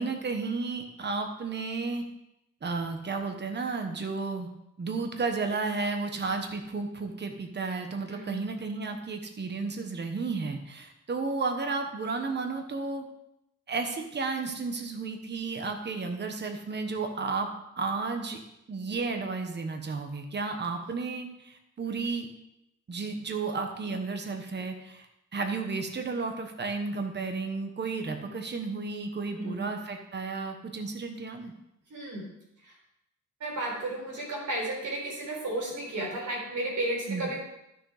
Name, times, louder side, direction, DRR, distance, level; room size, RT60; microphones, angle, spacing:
voice 1, 0.0-2.0 2.6-4.5 4.8-13.1 13.7-17.5 17.8-18.4 18.7-22.3 22.9-25.1 25.3-31.5 37.1-37.3, right 4 dB, 35° right, 5 dB, 1.1 m, -33 dB
voice 2, 8.1-8.4 21.8-22.1 28.1-28.3 29.3-29.7 31.9-32.3 32.6-32.7 33.4-37.4, right 1 dB, 70° right, -2 dB, 4.1 m, -33 dB
12.5 x 6.6 x 4.9 m, 0.86 s
wide cardioid pair, 160°, 31 cm